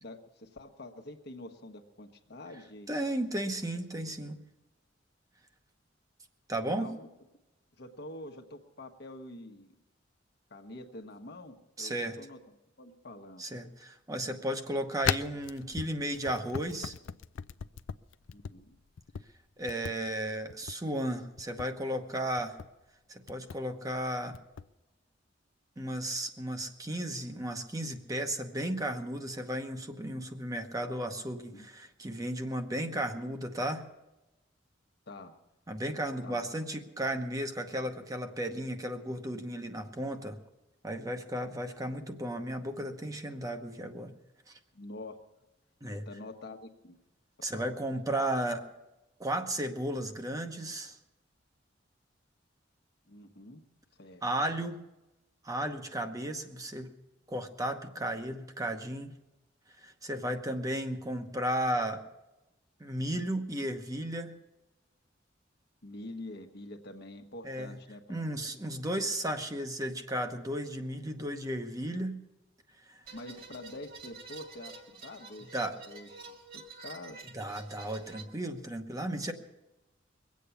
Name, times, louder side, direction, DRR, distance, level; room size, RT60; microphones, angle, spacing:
voice 1, 0.0-2.9 6.8-7.1 7.8-9.7 10.5-12.4 12.8-13.4 18.3-18.8 31.5-31.7 35.1-35.4 36.2-36.5 44.7-45.2 46.1-47.0 47.5-47.7 53.1-53.6 53.9-54.2 65.8-68.2 73.1-75.5 75.9-77.2, left 1 dB, 60° left, 4 dB, 1.2 m, -46 dB
voice 2, 2.9-4.4 6.5-6.9 11.8-12.2 13.4-16.9 19.6-22.6 23.1-24.4 25.8-33.8 35.7-40.4 40.8-44.1 44.5-44.6 45.8-46.0 47.4-48.6 49.2-51.0 54.2-54.8 55.4-56.9 57.3-59.2 59.8-62.0 62.8-64.3 67.4-67.8 68.1-72.2 72.9-73.0 75.5-75.7 77.3-79.3, right 1 dB, 20° right, 6 dB, 0.9 m, -34 dB
sound 1, 15.0-18.5 19.0-19.2 19.7-19.9 20.5-20.8 21.4-21.7 22.4-22.7 23.3-23.6 24.3-24.7, left 7 dB, 80° left, 0.4 m, -36 dB
sound 2, 73.1-78.2, right 4 dB, 50° right, 2.1 m, -48 dB
22.0 x 8.4 x 7.0 m, 0.99 s
head